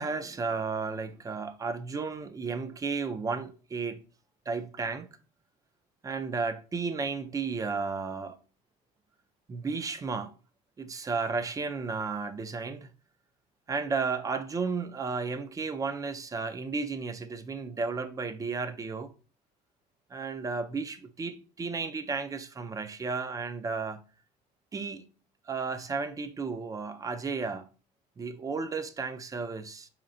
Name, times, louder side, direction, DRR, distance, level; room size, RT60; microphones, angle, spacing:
voice 1, 0.0-4.0 4.5-5.1 6.0-8.4 9.5-10.3 10.8-12.9 13.7-19.1 20.1-24.0 24.7-25.1 25.5-27.7 28.2-29.9, right 4 dB, 20° right, 0.4 m, -33 dB
4.7 x 4.3 x 2.6 m
cardioid pair, 120°, 17 cm